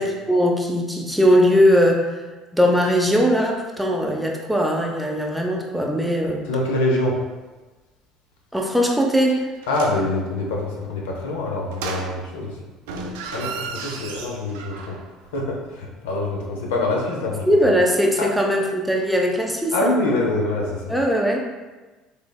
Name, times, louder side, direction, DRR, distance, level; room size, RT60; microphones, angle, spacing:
voice 1, 0.0-2.1 2.5-6.5 8.5-9.5 17.5-19.9 20.9-21.4, equal, 5° right, 0 dB, 0.6 m, -20 dB
voice 2, 6.4-7.2 9.7-12.6 13.3-14.9 15.3-17.7 18.2-18.3 19.7-20.9, left 2 dB, 80° left, -1 dB, 0.6 m, -25 dB
sound 1, 9.6-10.1 11.7-12.5 12.8-15.1 15.3-15.4, right 4 dB, 80° right, 0.3 m, -34 dB
3.3 x 3.2 x 2.2 m, 1.2 s
hypercardioid pair, 65°, 0 cm